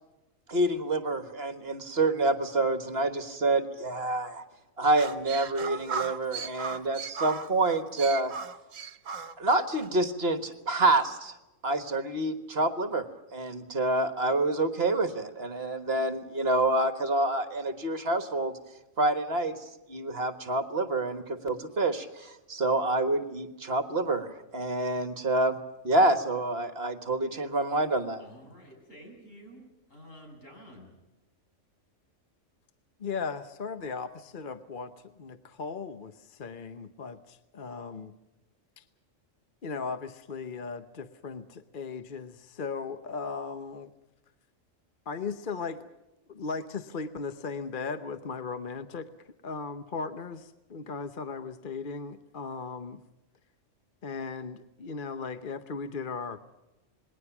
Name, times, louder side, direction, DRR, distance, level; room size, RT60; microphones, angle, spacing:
voice 1, 0.5-4.4 4.8-8.3 9.4-11.3 11.6-13.1 13.3-18.6 19.0-19.5 19.9-25.6 25.8-28.2, right 2 dB, 50° right, 9 dB, 1.7 m, -27 dB
sound 1, 4.8-9.9, right 6 dB, 75° right, 1.4 m, -37 dB
voice 2, 28.2-30.9, equal, 80° left, 1 dB, 7.7 m, -50 dB
voice 3, 33.0-38.1 38.8-38.9 39.6-43.9 45.1-45.8 46.3-49.1 49.4-53.0 54.0-56.4, left 5 dB, 45° left, 10 dB, 1.0 m, -37 dB
27.5 x 20.5 x 6.0 m, 1.0 s
omnidirectional pair, 1.3 m